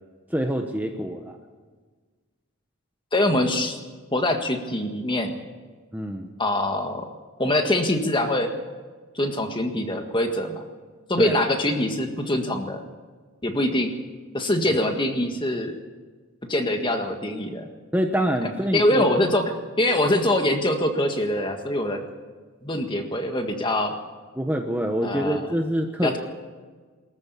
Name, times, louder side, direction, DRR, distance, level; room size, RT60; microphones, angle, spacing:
voice 1, 0.3-1.4 5.9-6.3 11.2-11.4 17.9-19.0 24.4-26.1, equal, 10° right, 3 dB, 1.1 m, -25 dB
voice 2, 3.1-3.8 4.1-5.3 6.4-7.0 7.4-8.5 9.1-10.6 11.1-12.8 13.4-13.9 14.3-15.8 16.5-17.7 18.7-22.1 22.6-23.9 25.0-25.4 26.0-26.2, left 1 dB, 20° left, 5 dB, 1.7 m, -24 dB
22.5 x 14.0 x 8.4 m, 1.4 s
head